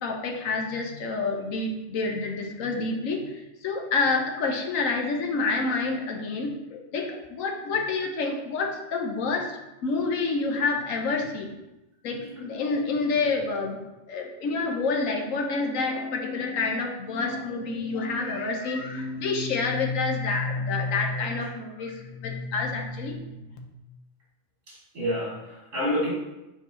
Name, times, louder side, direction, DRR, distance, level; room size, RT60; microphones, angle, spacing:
voice 1, 0.0-11.6 12.0-13.8 14.1-23.6, left 3 dB, 85° left, 2 dB, 1.2 m, -28 dB
voice 2, 24.7-26.1, equal, 55° right, -5 dB, 2.7 m, -29 dB
8.2 x 4.5 x 3.1 m, 0.96 s
omnidirectional pair, 1.3 m